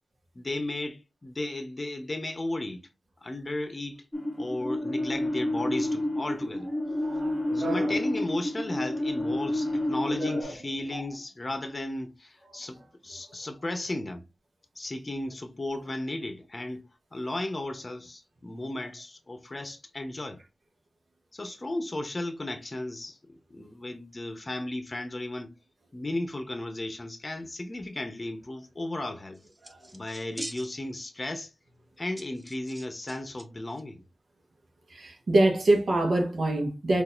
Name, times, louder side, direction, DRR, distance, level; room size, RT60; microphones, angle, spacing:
voice 1, 0.3-2.8 3.2-4.1 4.4-6.7 7.5-12.8 13.0-14.2 14.8-16.8 17.1-20.4 21.3-25.5 25.9-29.4 29.9-31.5 32.0-34.0, left 1 dB, 35° left, 0.8 m, -35 dB
sound 1, 4.1-10.4, left 1 dB, 5° left, 1.0 m, -29 dB
voice 2, 6.9-8.0 10.1-10.5 29.6-29.9 34.9-37.0, right 2 dB, 70° right, 0.9 m, -26 dB
sound 2, 29.3-31.0 31.4-31.5 32.2-33.4 33.7-33.8, right 1 dB, 20° right, 0.7 m, -43 dB
3.9 x 2.6 x 2.4 m
wide cardioid pair, 65°, 0 cm